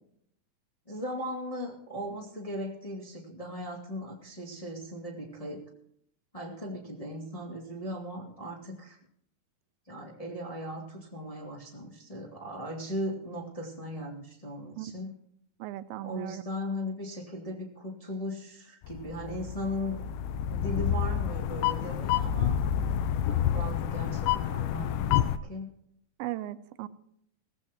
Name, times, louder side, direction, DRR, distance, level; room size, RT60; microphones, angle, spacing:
voice 1, 0.9-5.6 6.3-9.0 9.9-15.1 16.0-20.0 20.5-22.6 23.2-25.7, left 1 dB, 15° left, -1 dB, 1.5 m, -38 dB
voice 2, 15.6-16.4 26.2-26.9, right 15 dB, 85° right, 12 dB, 2.6 m, -37 dB
sound 1, 18.8-25.4, left 9 dB, 80° left, 2.3 m, -29 dB
18.0 x 15.0 x 2.9 m, 0.70 s
omnidirectional pair, 4.3 m